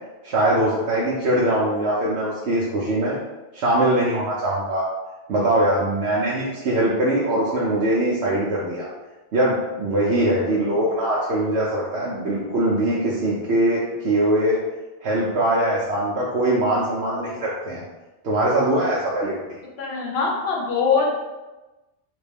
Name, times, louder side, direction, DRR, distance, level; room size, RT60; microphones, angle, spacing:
voice 1, 0.2-3.2 3.5-4.8 5.3-8.9 9.3-14.6 15.0-17.8 18.2-19.4, right 1 dB, 70° right, -6 dB, 0.8 m, -22 dB
voice 2, 19.8-21.1, left 5 dB, 65° left, -1 dB, 0.9 m, -22 dB
3.4 x 2.2 x 3.4 m, 1.1 s
omnidirectional pair, 1.2 m